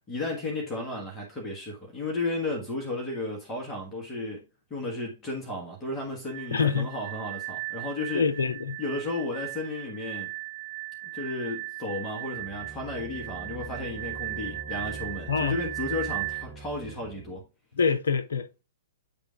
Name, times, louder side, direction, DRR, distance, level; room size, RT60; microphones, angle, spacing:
voice 1, 0.1-4.4 4.7-8.3 8.8-10.3 11.1-17.4, left 2 dB, 15° left, 1.7 m, -33 dB
sound 1, 6.3-16.4, right 23 dB, 55° right, 1.0 m, -37 dB
voice 2, 6.5-6.9 8.1-8.8 15.3-15.6 17.7-18.6, left 5 dB, 60° left, 0.6 m, -26 dB
sound 2, 12.3-17.5, right 3 dB, ahead, 1.0 m, -43 dB
9.2 x 3.5 x 3.7 m
figure-of-eight pair, 110°, 0 cm